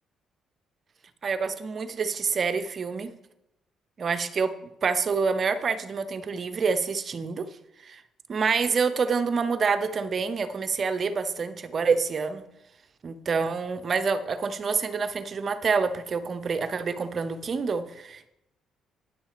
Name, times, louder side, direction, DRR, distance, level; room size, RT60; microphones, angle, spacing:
voice 1, 1.2-3.1 4.0-4.5 4.8-7.5 7.8-8.0 8.3-12.4 13.0-18.3, right 5 dB, 50° right, 11 dB, 0.7 m, -27 dB
9.4 x 6.2 x 5.0 m, 0.87 s
supercardioid pair, 75°, 0 cm